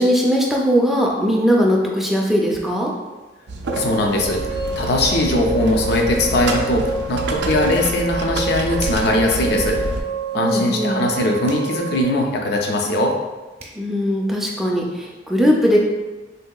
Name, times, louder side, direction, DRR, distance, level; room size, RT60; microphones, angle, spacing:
voice 1, 0.0-2.9 10.3-11.0 13.8-15.8, equal, ahead, -2 dB, 0.4 m, -19 dB
sound 1, 3.5-10.0, right 2 dB, 70° right, 0.3 m, -28 dB
sound 2, 3.7-12.0, right 4 dB, 80° left, 1.1 m, -28 dB
voice 2, 3.7-4.4 4.8-9.8 10.3-13.1, left 1 dB, 60° left, 1 dB, 0.5 m, -20 dB
sound 3, 8.8-9.2 11.4-11.7 13.3-13.4 13.6-13.8, right 2 dB, 35° right, 0.7 m, -36 dB
3.6 x 2.7 x 2.2 m, 1.2 s
head